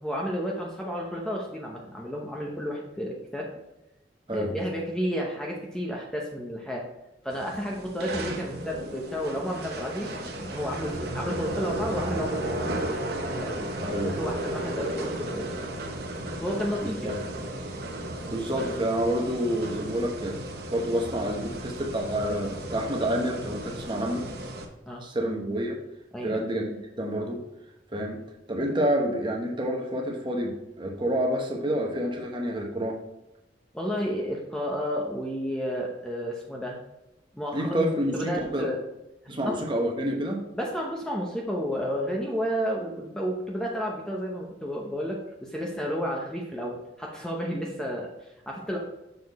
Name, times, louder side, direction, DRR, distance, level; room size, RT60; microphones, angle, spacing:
voice 1, 0.0-3.5 4.3-6.8 7.2-12.8 13.3-15.7 16.4-17.1 24.9-25.0 26.1-26.4 33.7-36.8 37.3-38.8 39.4-39.6 40.6-48.8, equal, 5° left, -2 dB, 0.7 m, -32 dB
sound 1, 7.3-24.6, right 1 dB, 55° right, 0.9 m, -34 dB
voice 2, 13.8-14.2 16.8-17.2 18.3-20.4 20.7-24.3 25.0-25.8 26.2-27.4 27.9-33.0 37.5-38.7 39.3-40.4, equal, 25° right, 0 dB, 0.9 m, -28 dB
6.7 x 4.3 x 4.1 m, 0.91 s
head